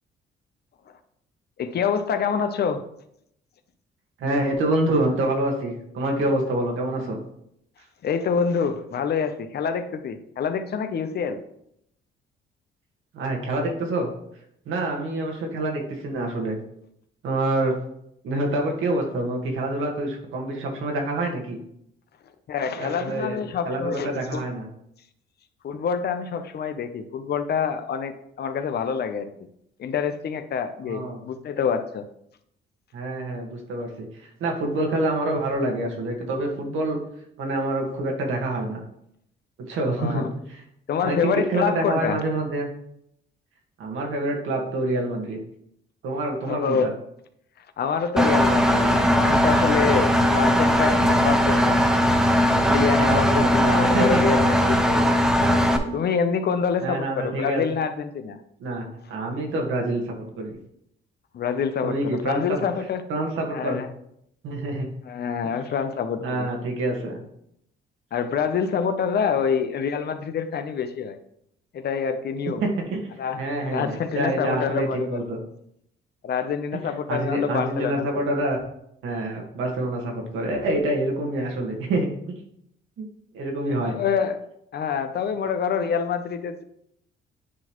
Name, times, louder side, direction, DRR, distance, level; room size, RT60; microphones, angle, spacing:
voice 1, 1.6-2.8 8.0-11.4 22.5-24.4 25.6-29.3 29.8-32.1 40.0-40.3 40.9-42.2 46.5-46.9 47.8-51.9 52.5-55.1 55.9-58.4 61.3-63.0 63.5-63.9 65.1-66.5 68.1-71.2 71.7-72.6 73.2-75.2 76.2-78.2 83.8-84.4 84.7-86.6, left 6 dB, 55° left, 9 dB, 0.7 m, -26 dB
voice 2, 4.2-7.2 13.1-14.1 14.6-16.6 17.2-17.7 18.2-21.6 22.8-24.6 30.9-31.2 32.9-37.0 37.4-38.8 39.7-40.6 41.0-42.7 43.8-45.4 46.0-46.9 53.0-54.2 56.8-57.6 58.6-60.5 61.8-62.6 63.1-63.8 64.4-64.9 66.2-67.2 72.6-73.1 73.4-75.4 76.7-76.8 77.1-78.6 79.0-82.1 83.0-83.1 83.3-83.9, right 2 dB, 85° right, 1 dB, 1.6 m, -26 dB
Engine, 48.2-55.8, equal, 5° right, 0.8 m, -19 dB
9.4 x 4.0 x 3.1 m, 0.74 s
cardioid pair, 90°, 20 cm